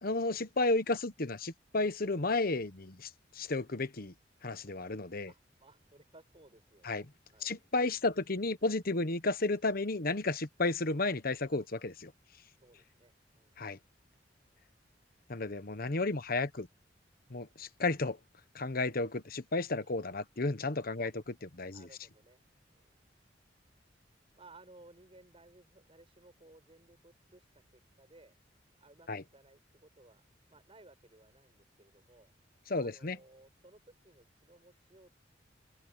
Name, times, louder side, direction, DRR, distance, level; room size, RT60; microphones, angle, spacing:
voice 1, 0.0-3.1 3.3-4.1 4.4-5.3 6.8-7.0 7.4-12.1 13.6-13.8 15.3-16.7 17.3-18.2 18.5-21.1 21.6-21.9 29.1-29.2 32.7-33.2, left 3 dB, 55° left, 1.2 m, -32 dB
voice 2, 5.3-7.5 12.6-13.6 19.8-20.0 21.0-21.1 21.7-22.4 22.7-23.0 24.3-27.5 27.7-28.3 28.8-30.2 30.5-32.3 32.8-35.2, right 2 dB, 30° right, 7.5 m, -60 dB
open air
head